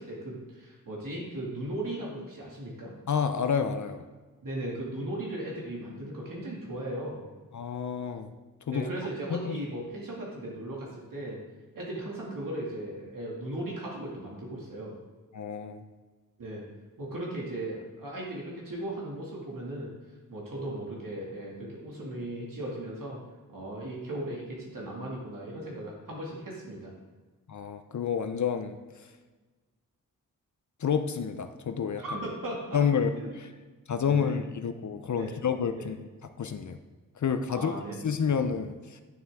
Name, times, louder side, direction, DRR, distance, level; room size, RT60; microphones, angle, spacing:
voice 1, 0.0-2.9 4.4-7.2 8.7-11.4 11.7-14.9 16.4-16.6 17.0-19.9 20.3-23.2 23.5-26.9 32.0-32.8 33.1-33.3 34.0-34.3 35.1-35.3 35.8-35.9 37.5-38.0, right 1 dB, 70° right, -4 dB, 2.3 m, -37 dB
voice 2, 3.1-4.0 7.5-8.3 8.7-8.9 9.3-9.6 15.3-15.8 27.5-28.8 30.8-32.0 32.7-33.1 33.9-36.0 36.4-36.8 37.2-37.7 38.0-39.0, left 7 dB, 55° left, 8 dB, 0.7 m, -29 dB
11.5 x 7.2 x 3.6 m, 1.3 s
wide cardioid pair, 115°, 34 cm